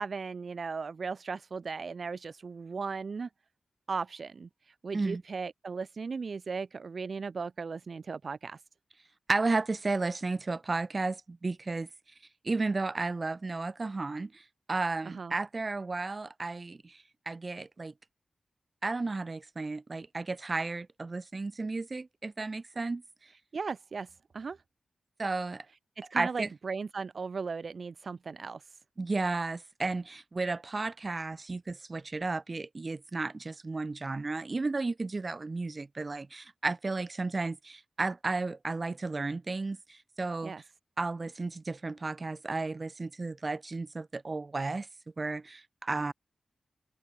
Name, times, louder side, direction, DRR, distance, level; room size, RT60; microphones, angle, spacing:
voice 1, 0.0-3.3 3.9-8.6 15.0-15.3 23.5-24.6 26.0-28.7 40.4-40.6, right 5 dB, 65° right, 4.2 m, -37 dB
voice 2, 9.3-11.9 12.4-14.4 14.7-17.9 18.8-23.0 25.2-25.6 26.1-26.5 29.0-40.5 41.0-44.9 45.2-46.1, right 3 dB, 45° right, 6.4 m, -33 dB
cardioid pair, 40°, 0 cm